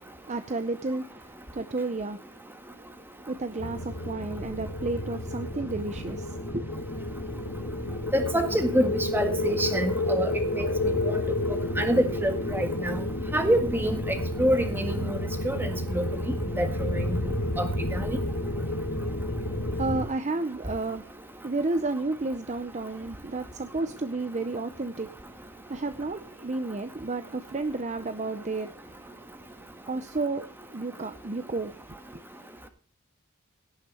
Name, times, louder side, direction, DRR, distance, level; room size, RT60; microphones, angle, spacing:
voice 1, 0.0-2.2 3.3-6.9 19.8-21.1 21.4-29.0 29.9-30.5 30.7-31.8 32.1-32.2, right 3 dB, 30° right, 0.6 m, -32 dB
sound 1, 3.6-20.0, left 1 dB, 65° left, 2.2 m, -30 dB
voice 2, 8.1-10.3 10.5-11.2 11.8-13.0 13.3-15.2 15.5-16.1 16.6-17.2 17.6-18.2, equal, 10° right, 1.8 m, -27 dB
17.0 x 6.6 x 5.4 m
head